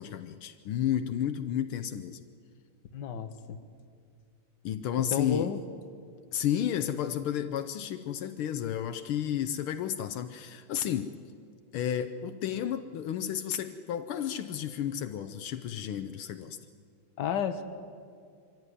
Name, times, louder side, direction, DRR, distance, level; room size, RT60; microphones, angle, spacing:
voice 1, 0.0-2.2 4.6-5.5 6.3-11.1 11.7-16.6, left 10 dB, 80° left, 9 dB, 1.6 m, -32 dB
voice 2, 2.9-3.6 5.1-5.6 17.2-17.6, left 8 dB, 60° left, 8 dB, 1.7 m, -31 dB
24.0 x 15.5 x 9.8 m, 2.3 s
omnidirectional pair, 2.4 m